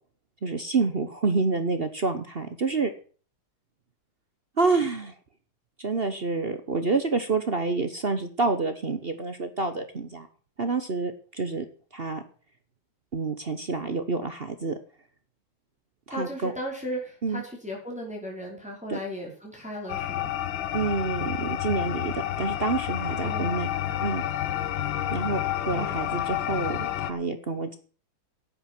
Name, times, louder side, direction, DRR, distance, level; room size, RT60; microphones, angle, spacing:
voice 1, 0.4-2.9 4.6-5.1 5.8-10.3 10.6-11.7 11.9-12.2 13.1-14.8 16.2-16.5 17.2-17.4 18.9-19.0 20.7-23.7 24.0-24.2 25.1-27.7, right 3 dB, 40° right, 9 dB, 0.8 m, -28 dB
voice 2, 16.1-20.3 23.2-23.6 25.7-25.9, equal, 5° right, -2 dB, 4.8 m, -36 dB
sound 1, 19.9-27.1, left 11 dB, 70° left, 1.6 m, -30 dB
11.0 x 8.9 x 7.7 m, 0.41 s
omnidirectional pair, 2.3 m